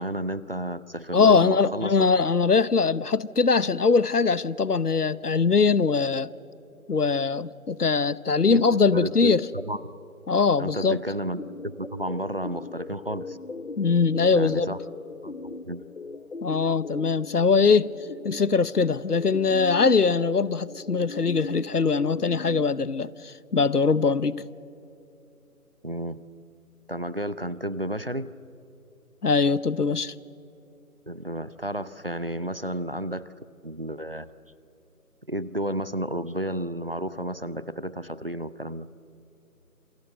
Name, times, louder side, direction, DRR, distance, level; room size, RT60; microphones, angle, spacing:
voice 1, 0.0-2.1 8.5-8.7 8.9-9.9 10.6-13.4 14.3-14.8 15.2-15.8 25.8-26.2 26.9-28.3 31.1-33.3 33.6-34.3 35.3-38.9, equal, 40° right, 0.6 m, -32 dB
voice 2, 1.1-6.3 6.9-9.4 10.3-11.0 13.8-14.8 16.4-17.9 18.2-24.4 29.2-30.1, left 5 dB, 85° left, 0.9 m, -22 dB
sound 1, 11.4-22.6, left 3 dB, 55° left, 0.8 m, -39 dB
27.5 x 25.0 x 6.7 m
figure-of-eight pair, 160°, 45 cm